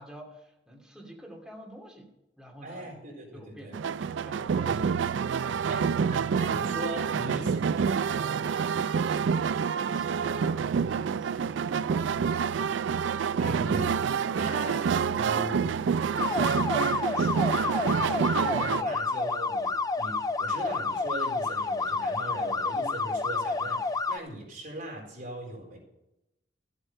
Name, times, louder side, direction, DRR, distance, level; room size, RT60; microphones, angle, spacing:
voice 1, 0.0-2.1 2.4-2.8 3.3-4.9 6.0-6.1 8.9-13.2, equal, 5° right, -1 dB, 2.7 m, -50 dB
voice 2, 2.6-3.7 4.7-5.1 5.7-8.6 13.4-14.1 14.3-15.7 16.7-25.8, right 1 dB, 50° right, -1 dB, 4.2 m, -39 dB
sound 1, 3.7-18.8, right 6 dB, 80° right, 0.4 m, -27 dB
sound 2, 16.2-24.2, left 3 dB, 20° left, 0.4 m, -29 dB
14.5 x 8.2 x 5.5 m, 0.89 s
head